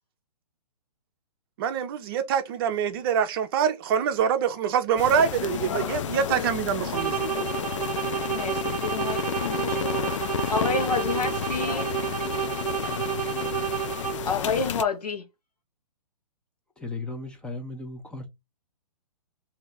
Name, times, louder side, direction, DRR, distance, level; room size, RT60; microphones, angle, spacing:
voice 1, 1.6-7.4, right 7 dB, 35° right, 0.7 m, -25 dB
sound 1, 5.0-14.8, left 9 dB, 55° left, 0.4 m, -31 dB
sound 2, 6.9-14.4, right 9 dB, 85° right, 0.5 m, -30 dB
voice 2, 8.3-9.9 10.5-11.9 14.2-15.2, left 4 dB, 80° left, 1.0 m, -29 dB
voice 3, 16.8-18.3, left 2 dB, 5° left, 0.7 m, -36 dB
3.2 x 2.8 x 4.0 m
figure-of-eight pair, 125°, 19 cm